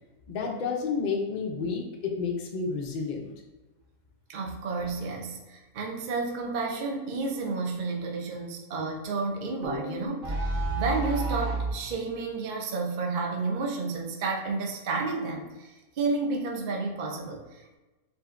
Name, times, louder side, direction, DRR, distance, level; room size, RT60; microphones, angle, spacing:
voice 1, 0.3-3.3, left 5 dB, 75° left, 1 dB, 0.4 m, -30 dB
voice 2, 4.3-17.8, right 3 dB, 75° right, 1 dB, 0.4 m, -31 dB
sound 1, 9.6-11.8, right 2 dB, 40° right, 1.1 m, -30 dB
7.5 x 2.7 x 2.5 m, 1.1 s
omnidirectional pair, 1.7 m